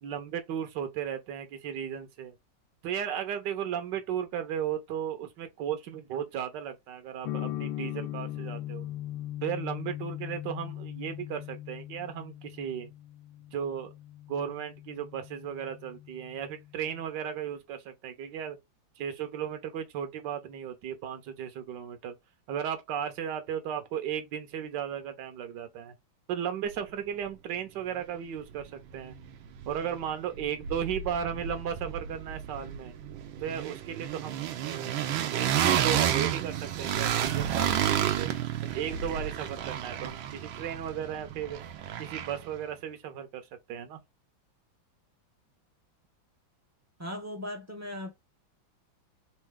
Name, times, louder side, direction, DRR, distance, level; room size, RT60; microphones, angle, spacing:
voice 1, 0.0-2.3 2.8-8.9 9.4-12.9 13.5-13.9 14.3-18.6 19.0-22.2 22.5-25.9 26.3-29.2 29.7-33.0 33.4-35.0 35.3-38.3 38.6-41.6 42.0-44.0, right 9 dB, 70° right, 1.5 m, -35 dB
sound 1, 7.2-17.0, left 13 dB, 85° left, 1.4 m, -40 dB
sound 2, 28.6-28.7 28.9-30.1 30.3-42.6, right 10 dB, 90° right, 1.5 m, -31 dB
voice 2, 47.0-48.1, left 1 dB, 20° right, 0.4 m, -38 dB
3.8 x 3.1 x 3.6 m
omnidirectional pair, 2.1 m